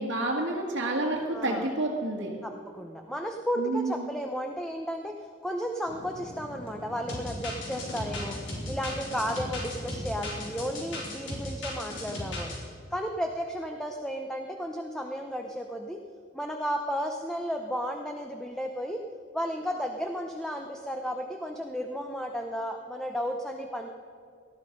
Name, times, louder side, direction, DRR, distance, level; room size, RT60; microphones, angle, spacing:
voice 1, 0.0-2.3 3.6-4.1, right 2 dB, 90° right, -5 dB, 1.9 m, -29 dB
voice 2, 1.3-1.7 2.4-8.4 8.7-12.5 12.9-16.0 16.3-19.0 19.3-23.9, equal, 5° left, 3 dB, 0.8 m, -33 dB
sound 1, 5.9-11.1, equal, 30° left, 1.7 m, -44 dB
sound 2, 7.1-12.6, left 1 dB, 90° left, 4.4 m, -36 dB
19.0 x 13.0 x 5.3 m, 2.2 s
head